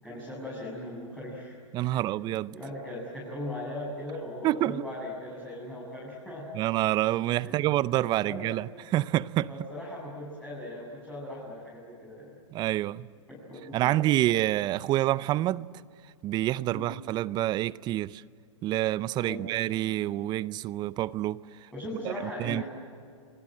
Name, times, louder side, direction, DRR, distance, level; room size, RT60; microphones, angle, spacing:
voice 1, 0.0-1.6 1.9-6.5 7.4-7.7 8.3-8.5 9.5-12.3 13.3-14.0 16.7-16.9 19.1-19.5 21.7-22.7, left 1 dB, 5° left, 7.7 m, -39 dB
voice 2, 1.7-2.6 4.4-4.8 6.5-9.5 12.5-13.1 13.7-15.7 16.2-18.2 18.6-21.7 22.0-22.1 22.4-22.6, right 15 dB, 25° right, 0.6 m, -27 dB
29.0 x 25.0 x 7.7 m
hypercardioid pair, 120°, 16 cm